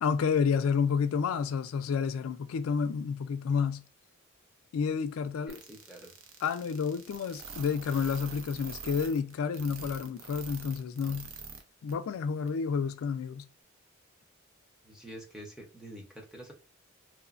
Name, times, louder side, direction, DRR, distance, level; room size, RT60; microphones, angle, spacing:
voice 1, 0.0-3.8 4.7-5.6 6.4-11.3 11.8-13.5, left 6 dB, 85° left, 0.3 m, -30 dB
voice 2, 5.5-6.1 7.6-7.7 14.8-16.5, right 1 dB, 5° right, 0.6 m, -47 dB
sound 1, 5.5-11.6 11.9-12.0 12.5-12.6, right 5 dB, 70° right, 0.5 m, -44 dB
2.9 x 2.1 x 2.4 m
head